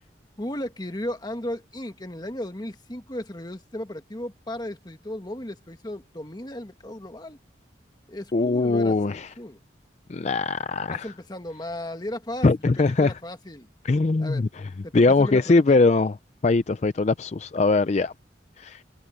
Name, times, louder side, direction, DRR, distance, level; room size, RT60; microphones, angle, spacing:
voice 1, 0.4-7.4 8.1-9.6 10.9-12.7 13.0-13.7 14.2-14.4 14.8-15.8, left 1 dB, 20° left, 1.6 m, -35 dB
voice 2, 8.3-9.3 10.1-11.1 12.4-13.1 13.8-16.2 16.4-18.1 18.6-18.8, left 3 dB, 40° left, 0.4 m, -21 dB
head